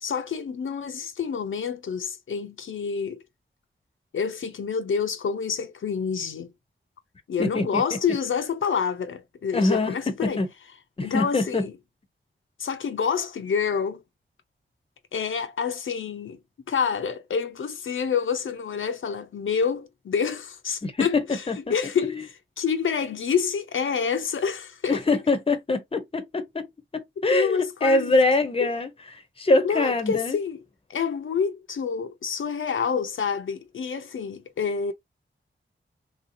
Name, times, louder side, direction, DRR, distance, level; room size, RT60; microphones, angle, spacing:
voice 1, 0.0-3.2 4.1-6.5 7.3-10.4 11.0-11.7 12.6-14.0 15.1-16.4 16.7-21.4 21.7-22.2 22.6-25.0 27.2-28.2 28.6-28.7 29.6-30.6 30.9-34.9, left 6 dB, 75° left, 0.5 m, -28 dB
voice 2, 7.4-7.8 9.5-10.5 11.0-11.7 20.8-21.6 22.0-22.2 24.9-26.7 26.9-28.9 29.4-30.4, left 2 dB, 30° left, 0.6 m, -24 dB
3.2 x 2.7 x 2.6 m
wide cardioid pair, 105°, 20 cm